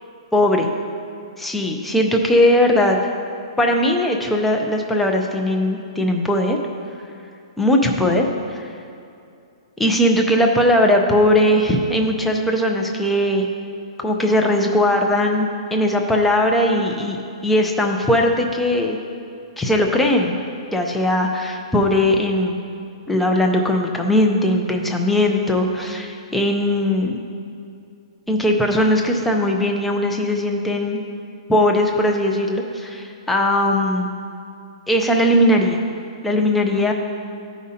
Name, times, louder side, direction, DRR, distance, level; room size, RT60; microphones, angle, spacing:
voice 1, 0.3-0.7 1.4-3.0 3.6-6.6 7.6-8.3 8.5-8.6 9.8-13.5 14.0-17.2 17.4-19.0 19.6-20.4 20.7-22.6 23.1-27.2 28.3-31.0 31.5-34.1 34.9-35.8 36.2-36.9, left 1 dB, 5° left, 1 dB, 0.5 m, -19 dB
13.0 x 5.1 x 2.8 m, 2.5 s
hypercardioid pair, 155°, 3 cm